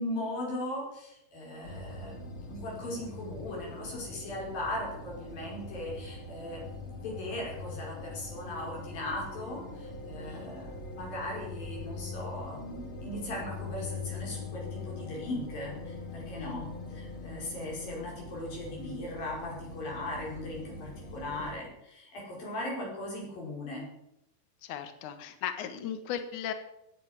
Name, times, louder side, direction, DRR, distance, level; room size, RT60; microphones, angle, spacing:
voice 1, 0.0-6.7 7.0-23.8, left 1 dB, 90° left, -3 dB, 7.3 m, -38 dB
sound 1, 1.6-21.5, left 3 dB, 40° left, 3.3 m, -42 dB
voice 2, 24.6-26.5, left 9 dB, 65° left, 9 dB, 2.8 m, -37 dB
15.0 x 9.7 x 9.8 m, 0.81 s
omnidirectional pair, 3.9 m